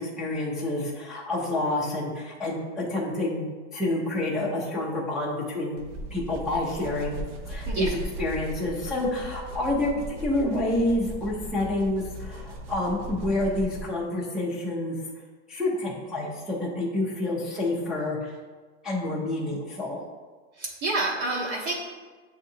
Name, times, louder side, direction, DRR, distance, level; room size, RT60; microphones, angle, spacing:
voice 1, 0.0-5.8 6.1-7.2 7.5-9.9 10.2-15.0 15.5-18.4 18.8-20.0, left 1 dB, ahead, -7 dB, 0.3 m, -28 dB
sound 1, 5.8-14.0, right 1 dB, 90° right, 0.7 m, -37 dB
voice 2, 20.6-21.7, right 2 dB, 70° right, -4 dB, 1.0 m, -28 dB
7.3 x 2.7 x 2.6 m, 1.4 s
supercardioid pair, 145°, 35 cm